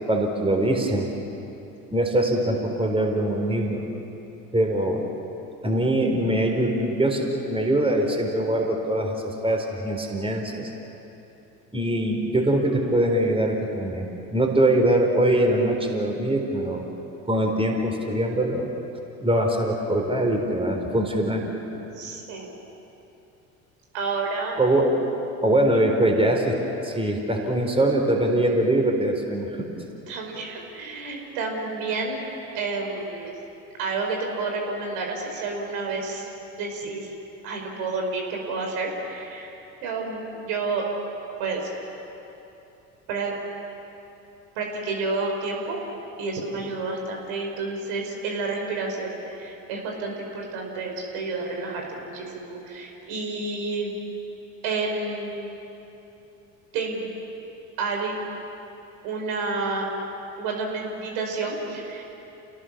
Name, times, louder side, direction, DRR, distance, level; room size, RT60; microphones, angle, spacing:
voice 1, 0.1-1.1 1.9-3.8 4.5-5.1 5.6-10.7 11.7-16.9 17.3-18.7 19.2-21.5 24.6-25.0 25.4-29.5, right 1 dB, 15° right, 2 dB, 4.0 m, -23 dB
voice 2, 21.9-22.5 23.9-24.6 30.1-32.2 32.5-33.3 33.8-37.1 37.4-40.9 41.4-41.7 43.1-43.3 44.5-45.8 46.2-53.9 54.6-55.5 56.7-57.1 57.8-58.1 59.0-59.9 60.4-62.0, right 3 dB, 70° right, 1 dB, 4.8 m, -30 dB
29.0 x 18.0 x 7.2 m, 3.0 s
hypercardioid pair, 65°, 42 cm